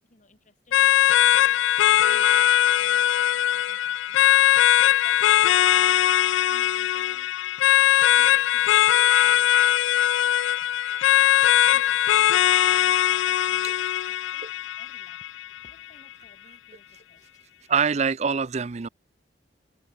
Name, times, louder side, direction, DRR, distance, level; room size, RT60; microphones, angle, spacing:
voice 1, 0.0-2.4 2.8-4.7 5.0-7.4 8.0-10.1 10.7-15.3 15.6-17.3, left 4 dB, 40° left, 2.5 m, -55 dB
sound 1, 0.7-15.7, left 11 dB, 85° left, 0.3 m, -20 dB
voice 2, 17.7-18.9, right 6 dB, 35° right, 0.5 m, -24 dB
head